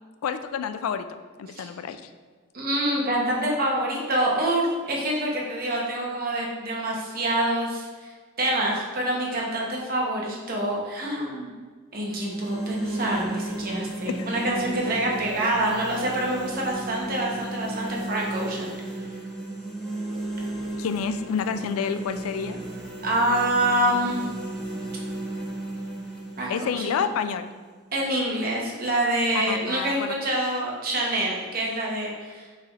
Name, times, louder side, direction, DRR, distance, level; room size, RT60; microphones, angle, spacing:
voice 1, 0.2-2.0 14.2-14.3 20.8-22.6 26.5-27.5 29.3-30.1, left 7 dB, 85° left, 11 dB, 0.3 m, -29 dB
voice 2, 2.5-8.1 8.4-11.5 11.9-18.7 23.0-24.2 26.4-27.0 27.9-32.5, right 1 dB, 45° right, -2 dB, 0.9 m, -26 dB
sound 1, 12.0-28.0, right 2 dB, ahead, 0.8 m, -34 dB
6.6 x 3.3 x 2.4 m, 1.5 s
head